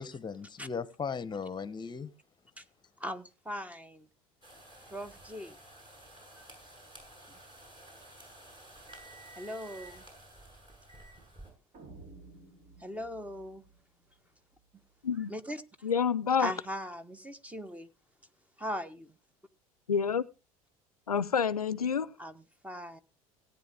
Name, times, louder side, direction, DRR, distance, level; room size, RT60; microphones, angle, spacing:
voice 1, 0.0-2.1, left 5 dB, 25° left, 1.1 m, -37 dB
voice 2, 3.0-4.1 4.9-5.6 6.4-6.5 7.3-7.4 9.3-10.0 12.8-13.6 15.3-15.6 16.4-17.9 18.6-19.1 22.2-23.0, equal, 5° right, 1.4 m, -39 dB
sound 1, 4.4-11.5, right 1 dB, 25° right, 7.2 m, -52 dB
sound 2, 11.7-14.8, right 3 dB, 45° right, 3.4 m, -54 dB
voice 3, 15.8-16.5 19.9-20.3 21.1-22.1, left 7 dB, 90° left, 0.6 m, -28 dB
17.5 x 9.4 x 3.5 m
figure-of-eight pair, 70°, 19 cm